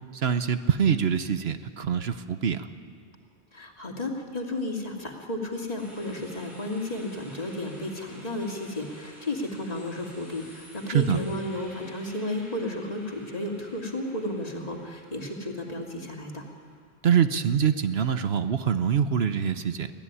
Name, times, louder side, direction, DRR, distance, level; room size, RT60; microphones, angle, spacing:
voice 1, 0.1-2.7 10.9-11.2 17.0-19.9, right 8 dB, 70° right, 10 dB, 1.1 m, -24 dB
voice 2, 3.5-16.4, left 1 dB, 35° left, 0 dB, 2.8 m, -33 dB
sound 1, 5.8-16.8, equal, ahead, 7.9 m, -52 dB
23.5 x 16.0 x 9.8 m, 2.1 s
omnidirectional pair, 1.1 m